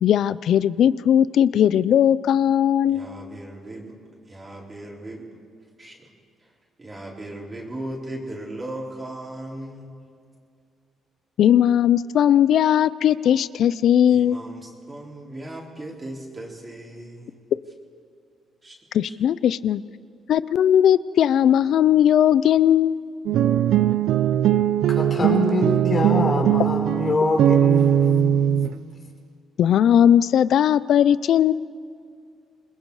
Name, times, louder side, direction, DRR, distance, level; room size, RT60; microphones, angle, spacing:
voice 1, 0.0-3.1 11.4-14.4 18.9-19.8 20.3-23.1 29.6-31.5, left 10 dB, 70° left, 18 dB, 0.5 m, -18 dB
voice 2, 2.9-4.0 4.3-5.2 5.8-6.1 6.4-6.5 6.8-10.0 14.1-17.4 18.6-18.7 19.0-19.1, right 1 dB, 25° right, -3 dB, 4.2 m, -37 dB
sound 1, 23.3-28.7, right 10 dB, 80° right, 0.5 m, -20 dB
voice 3, 24.9-28.5, left 2 dB, 40° left, 2 dB, 4.5 m, -24 dB
27.5 x 21.0 x 4.9 m, 2.3 s
cardioid pair, 90°, 0 cm